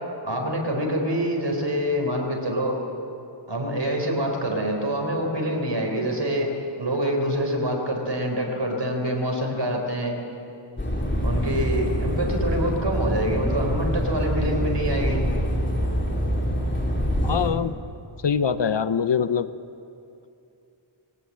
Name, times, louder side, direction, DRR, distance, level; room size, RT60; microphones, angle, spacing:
voice 1, 0.2-2.8 3.5-6.5 6.8-10.2 11.2-15.2, equal, 60° right, 2 dB, 4.4 m, -26 dB
sound 1, 10.8-17.5, equal, 25° left, 3.3 m, -25 dB
voice 2, 17.2-17.7 18.2-19.5, left 7 dB, 65° left, 13 dB, 0.8 m, -23 dB
22.0 x 18.0 x 8.7 m, 2.7 s
wide cardioid pair, 70°, 47 cm